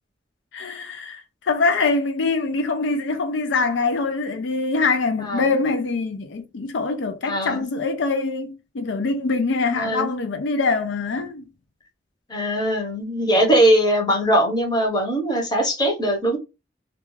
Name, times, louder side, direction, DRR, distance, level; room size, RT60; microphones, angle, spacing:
voice 1, 0.5-11.4, left 3 dB, 75° left, 0.4 m, -24 dB
voice 2, 7.3-7.6 9.8-10.1 12.3-16.4, right 1 dB, 25° left, 0.8 m, -20 dB
2.4 x 2.3 x 3.0 m
head